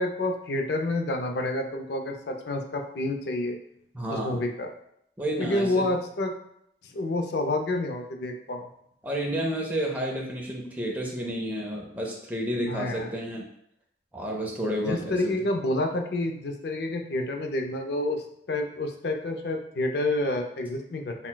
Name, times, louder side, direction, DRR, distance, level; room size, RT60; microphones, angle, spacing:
voice 1, 0.0-3.6 4.1-4.7 5.4-6.3 6.8-8.7 12.7-13.1 14.8-21.3, left 2 dB, 65° left, 4 dB, 0.4 m, -29 dB
voice 2, 3.9-4.4 5.2-5.8 9.0-13.4 14.1-15.3, equal, 10° right, -2 dB, 0.5 m, -30 dB
5.7 x 2.2 x 2.2 m, 0.72 s
head